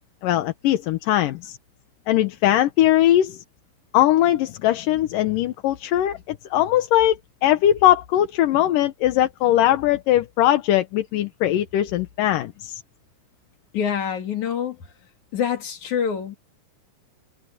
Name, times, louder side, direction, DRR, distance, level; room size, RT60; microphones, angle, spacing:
voice 1, 0.2-1.6 2.1-3.4 3.9-12.8, left 13 dB, 80° left, 2.6 m, -20 dB
voice 2, 13.7-14.9 15.3-16.4, left 8 dB, 60° left, 3.9 m, -26 dB
omnidirectional pair, 3.9 m